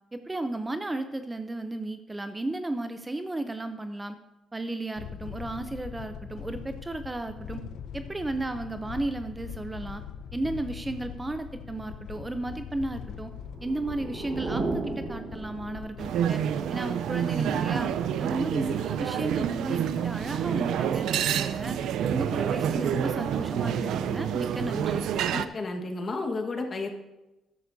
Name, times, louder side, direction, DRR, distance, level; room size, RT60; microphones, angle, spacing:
voice 1, 0.1-4.2 4.5-7.6 7.9-10.0 10.3-13.3 13.6-16.4 16.7-17.9 18.2-21.8 22.1-25.1, right 2 dB, 15° right, 9 dB, 0.5 m, -34 dB
sound 1, 5.0-16.4, left 8 dB, 80° left, 0.5 m, -42 dB
sound 2, 13.4-16.1, right 3 dB, 45° right, 1.3 m, -34 dB
sound 3, 16.0-25.5, right 9 dB, 80° right, 0.5 m, -28 dB
voice 2, 25.3-26.9, left 3 dB, 40° left, 3 dB, 1.4 m, -32 dB
13.0 x 11.0 x 2.7 m, 1.0 s
cardioid pair, 90°, 0 cm